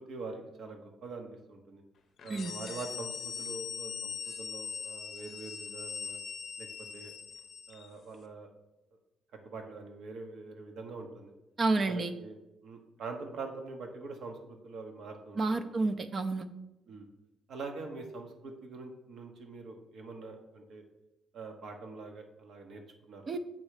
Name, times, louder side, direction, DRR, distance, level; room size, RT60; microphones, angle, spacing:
voice 1, 0.1-1.8 2.2-6.2 6.6-7.1 7.7-8.5 9.4-11.3 11.8-15.7 16.9-17.1 17.5-20.8 21.3-23.2, right 3 dB, 70° right, 4 dB, 1.0 m, -44 dB
sound 1, 2.2-7.9, left 6 dB, 60° left, 0.5 m, -41 dB
voice 2, 11.6-12.1 15.4-16.5 23.3-23.4, right 3 dB, 40° right, 9 dB, 0.5 m, -30 dB
7.3 x 3.2 x 4.9 m, 0.94 s
cardioid pair, 90°, 0 cm